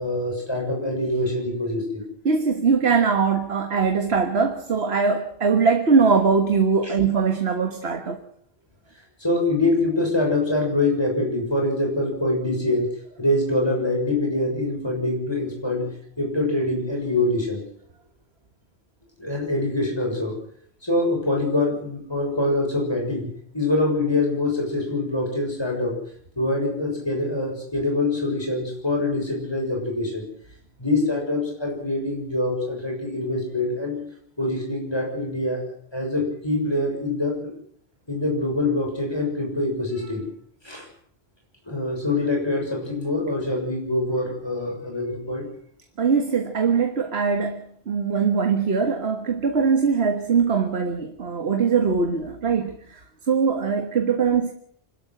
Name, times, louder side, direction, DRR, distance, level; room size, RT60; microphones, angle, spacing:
voice 1, 0.0-2.0 6.8-6.9 9.2-12.9 13.2-15.9 16.2-17.6 19.2-20.3 20.8-23.3 23.5-25.9 26.3-30.2 30.8-34.0 34.4-35.6 35.9-37.5 38.1-40.2 40.6-40.9 41.6-45.4, left 2 dB, 25° left, 6.7 m, -24 dB
voice 2, 2.2-8.2 46.0-53.0 53.3-54.5, right 5 dB, 80° right, 1.7 m, -21 dB
26.5 x 12.5 x 7.8 m
omnidirectional pair, 1.1 m